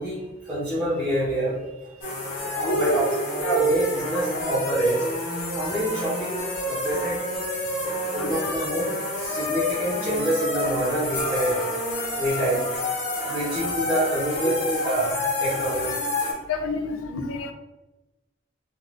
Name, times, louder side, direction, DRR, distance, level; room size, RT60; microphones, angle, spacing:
voice 1, 0.0-2.0 2.4-5.2 5.5-7.3 8.1-8.8 9.1-11.5 12.2-12.6 13.2-16.0, right 1 dB, 10° right, -13 dB, 1.0 m, -27 dB
sound 1, 2.0-16.3, left 1 dB, 40° left, 0.9 m, -28 dB
voice 2, 2.6-3.2 3.5-3.6 4.3-4.5 8.2-8.5 13.6-13.7 16.5-17.5, left 1 dB, 80° left, 6 dB, 0.4 m, -28 dB
3.8 x 2.5 x 2.4 m, 1.1 s
head